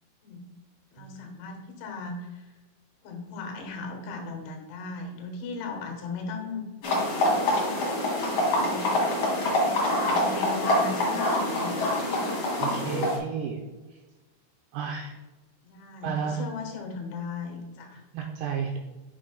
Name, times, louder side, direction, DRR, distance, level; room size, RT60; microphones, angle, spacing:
voice 1, 0.9-2.5 3.0-6.7 7.2-7.4 8.3-9.0 9.4-11.9 12.7-13.0 15.6-18.0, left 4 dB, 80° left, 3 dB, 3.5 m, -38 dB
sound 1, 6.8-13.2, left 1 dB, 40° left, 2.1 m, -25 dB
voice 2, 12.6-13.6 14.7-15.1 16.0-16.4 18.1-18.8, right 6 dB, 85° right, 1 dB, 2.4 m, -32 dB
9.3 x 6.4 x 2.2 m, 1.2 s
omnidirectional pair, 5.5 m